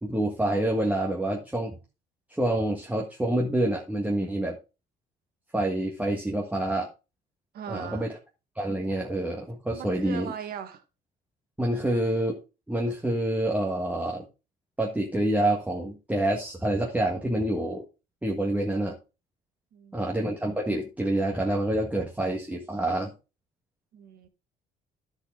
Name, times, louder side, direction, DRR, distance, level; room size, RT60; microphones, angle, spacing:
voice 1, 0.0-1.8 2.3-4.6 5.5-6.9 7.7-8.2 8.5-10.3 11.6-12.4 12.7-14.2 14.8-17.8 18.2-18.9 19.9-23.1, right 1 dB, 10° right, 1.7 m, -27 dB
voice 2, 7.5-8.1 9.7-10.8 19.7-20.0 23.9-24.3, right 8 dB, 65° right, 1.6 m, -39 dB
11.5 x 6.5 x 3.8 m
cardioid pair, 110°, 17 cm